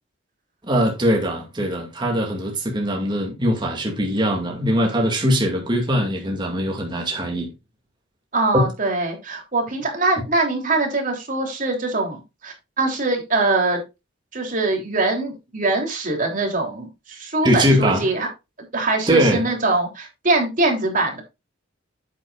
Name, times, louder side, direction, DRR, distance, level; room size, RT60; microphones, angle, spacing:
voice 1, 0.7-7.5 17.4-18.1 19.1-19.4, equal, 25° right, 2.3 m, -21 dB
voice 2, 8.3-13.8 14.3-18.3 18.7-21.2, right 2 dB, 45° right, 3.3 m, -23 dB
9.9 x 8.6 x 2.5 m
head